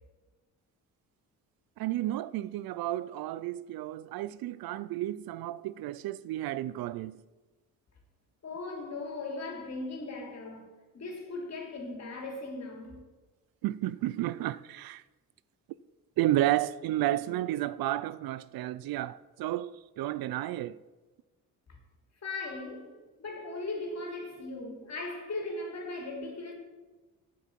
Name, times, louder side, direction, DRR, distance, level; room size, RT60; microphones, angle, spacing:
voice 1, 1.8-7.2 13.6-15.0 16.2-20.8, right 14 dB, 75° right, 0.5 m, -32 dB
voice 2, 8.4-10.7 10.9-13.0 21.7-21.8 22.2-22.9 23.2-26.5, left 2 dB, 45° left, 3.4 m, -38 dB
9.4 x 8.1 x 7.5 m
cardioid pair, 90°, 36 cm